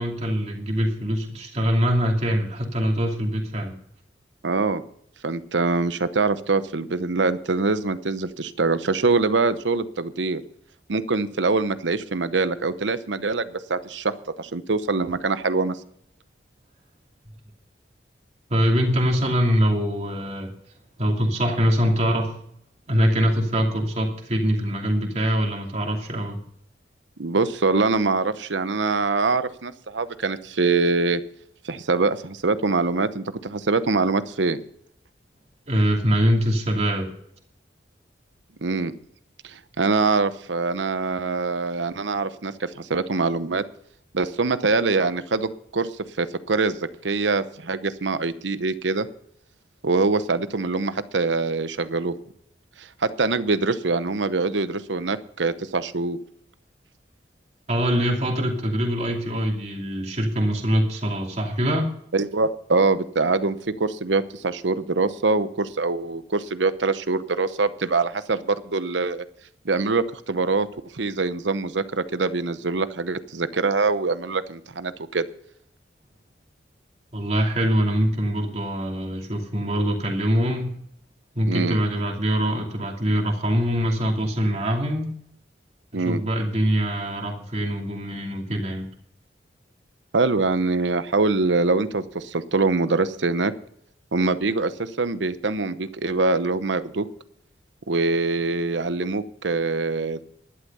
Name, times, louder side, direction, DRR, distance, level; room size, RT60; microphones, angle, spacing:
voice 1, 0.0-3.7 18.5-20.5 21.0-22.4 22.9-26.4 35.7-37.1 57.7-62.0 77.1-80.7 81.4-85.1 85.9-88.9, equal, 35° right, 1 dB, 2.7 m, -23 dB
voice 2, 4.4-4.8 5.2-10.4 10.9-15.8 27.2-31.2 31.6-34.6 38.6-38.9 39.4-43.6 44.1-45.9 46.2-49.1 49.8-52.1 52.8-56.2 62.1-69.2 69.6-70.7 70.9-75.3 81.5-81.8 85.9-86.2 90.1-93.5 94.1-97.1 97.9-100.2, right 3 dB, 85° right, 13 dB, 0.9 m, -24 dB
11.5 x 11.5 x 5.5 m, 0.70 s
head